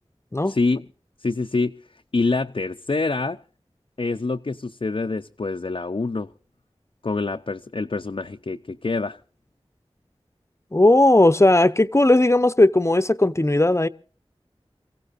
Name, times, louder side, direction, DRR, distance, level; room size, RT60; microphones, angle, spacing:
voice 1, 0.5-0.8 1.2-1.7 2.1-3.4 4.0-6.3 7.0-9.2, left 3 dB, 55° left, 0.7 m, -26 dB
voice 2, 10.7-13.9, left 2 dB, 25° left, 0.9 m, -17 dB
28.0 x 16.5 x 2.6 m
wide cardioid pair, 40°, 11 cm